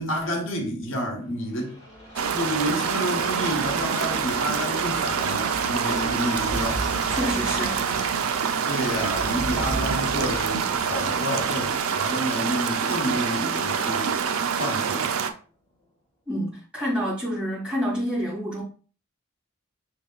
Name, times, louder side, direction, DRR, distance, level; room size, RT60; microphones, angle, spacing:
voice 1, 0.0-1.8 2.1-6.8 8.7-14.1 14.6-15.1, equal, 65° left, 1.1 m, -30 dB
sound 1, 1.5-14.9 15.3-15.4, right 1 dB, 25° left, 2.3 m, -37 dB
sound 2, 2.2-15.3, right 6 dB, 85° right, 0.5 m, -26 dB
voice 2, 7.1-7.8 16.3-18.6, equal, 5° right, 2.4 m, -28 dB
6.2 x 3.4 x 2.3 m
head